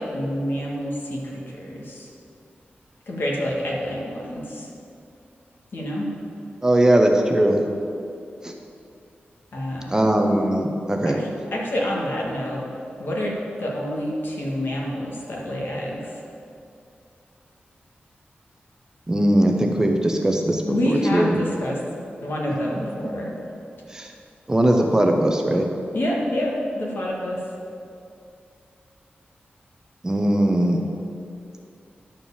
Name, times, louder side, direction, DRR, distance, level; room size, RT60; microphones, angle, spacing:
voice 1, 0.0-2.1 3.1-4.7 5.7-6.1 9.5-9.9 11.0-12.6 13.0-16.1 20.7-21.8 22.2-23.3 25.9-27.4, equal, 65° left, -3 dB, 1.8 m, -27 dB
voice 2, 6.6-7.6 8.4-8.5 9.9-11.2 19.1-21.4 23.9-24.1 24.5-25.7 30.0-30.8, right 1 dB, 15° right, 3 dB, 0.7 m, -20 dB
11.0 x 4.5 x 7.1 m, 2.6 s
wide cardioid pair, 150°, 4 cm